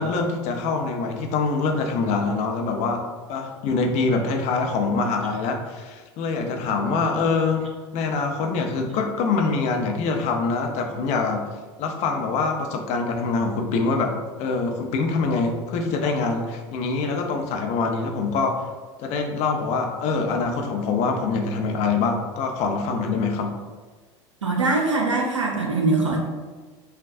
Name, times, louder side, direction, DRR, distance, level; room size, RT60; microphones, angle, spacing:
voice 1, 0.0-3.0 3.3-11.5 11.8-18.7 19.0-23.5, left 4 dB, 50° left, 3 dB, 0.6 m, -24 dB
voice 2, 24.4-26.2, right 3 dB, 90° right, 0 dB, 0.7 m, -22 dB
5.6 x 2.3 x 2.5 m, 1.4 s
hypercardioid pair, 80°, 15 cm